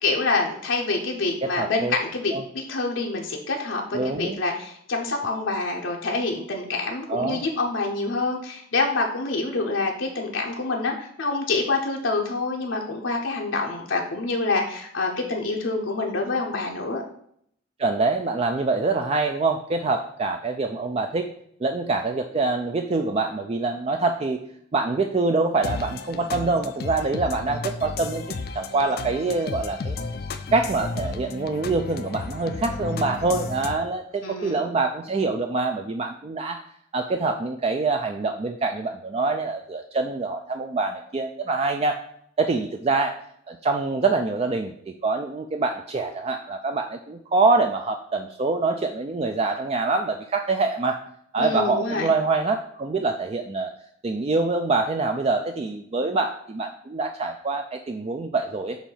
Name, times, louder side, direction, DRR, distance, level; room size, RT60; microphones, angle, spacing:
voice 1, 0.0-17.0 34.2-34.6 51.4-52.1, left 3 dB, 80° left, 0 dB, 0.8 m, -26 dB
voice 2, 1.4-2.0 2.3-2.4 3.9-4.4 7.1-7.4 17.8-21.3 21.6-24.4 24.7-30.0 30.5-36.6 36.9-42.0 42.4-43.2 43.5-44.7 45.0-51.0 51.3-53.7 54.0-58.8, right 3 dB, 30° right, 4 dB, 0.4 m, -25 dB
sound 1, 25.6-33.8, left 4 dB, 50° left, 0.4 m, -33 dB
7.1 x 2.7 x 5.6 m, 0.68 s
head